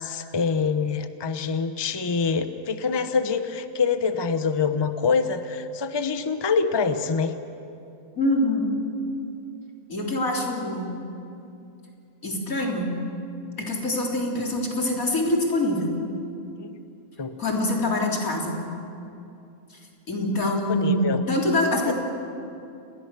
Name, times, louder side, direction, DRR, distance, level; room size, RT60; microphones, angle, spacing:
voice 1, 0.0-7.3 16.6-16.7 17.2-17.4 20.7-21.2 21.9-22.0, left 5 dB, 20° left, 9 dB, 0.8 m, -25 dB
voice 2, 8.2-8.8 9.9-10.9 12.2-12.9 13.6-16.0 17.4-18.6 20.1-21.9, left 1 dB, 85° left, -1 dB, 3.9 m, -24 dB
29.0 x 20.5 x 6.8 m, 2.7 s
omnidirectional pair, 1.4 m